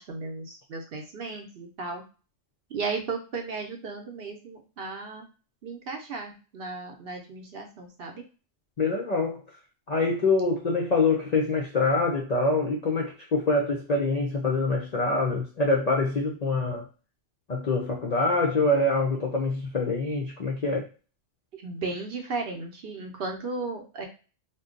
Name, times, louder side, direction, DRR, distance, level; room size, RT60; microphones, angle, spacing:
voice 1, 0.0-2.0 2.7-5.3 5.6-8.2 21.5-24.1, right 4 dB, 60° right, 3 dB, 0.8 m, -35 dB
voice 2, 8.8-9.4 9.9-16.9 17.5-20.9, left 3 dB, 55° left, -1 dB, 0.4 m, -25 dB
2.6 x 2.2 x 3.7 m, 0.34 s
omnidirectional pair, 1.3 m